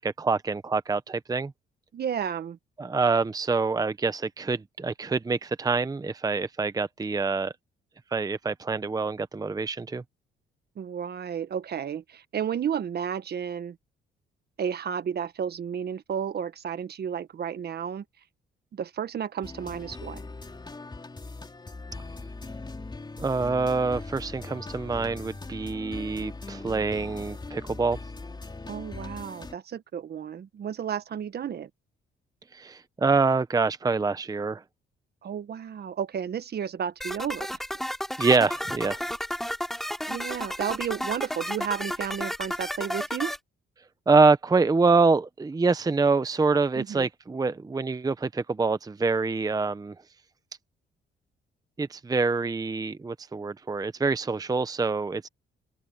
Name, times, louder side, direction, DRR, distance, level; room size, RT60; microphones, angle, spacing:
voice 1, 0.0-1.5 2.8-7.5 8.1-10.0 23.2-28.0 32.5-34.6 38.2-39.0 44.1-49.9 51.8-55.3, right 4 dB, 20° right, 0.7 m, -25 dB
voice 2, 1.9-2.6 10.8-13.8 14.6-18.0 18.7-20.2 28.7-31.7 35.2-37.5 40.1-43.3 46.8-47.1, right 8 dB, 55° right, 1.4 m, -32 dB
sound 1, 19.4-29.5, left 3 dB, 20° left, 3.6 m, -40 dB
sound 2, 37.0-43.4, equal, ahead, 3.2 m, -32 dB
open air
cardioid pair, 90°, 20 cm